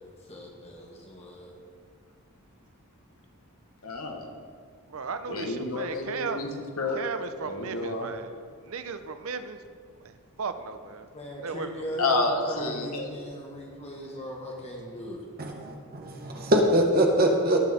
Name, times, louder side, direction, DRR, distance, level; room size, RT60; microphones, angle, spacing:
voice 1, 0.3-1.5 11.1-15.3, equal, 30° left, -2 dB, 2.0 m, -38 dB
voice 2, 3.8-4.3 5.3-7.0 7.4-8.1 12.0-13.1, left 2 dB, 75° left, 3 dB, 1.3 m, -30 dB
voice 3, 4.9-6.4 6.9-9.6 10.0-11.1 11.4-11.7, right 5 dB, 65° right, 9 dB, 0.7 m, -36 dB
voice 4, 15.4-17.6, right 1 dB, 45° right, 2 dB, 1.4 m, -23 dB
18.0 x 6.3 x 4.3 m, 2.1 s
head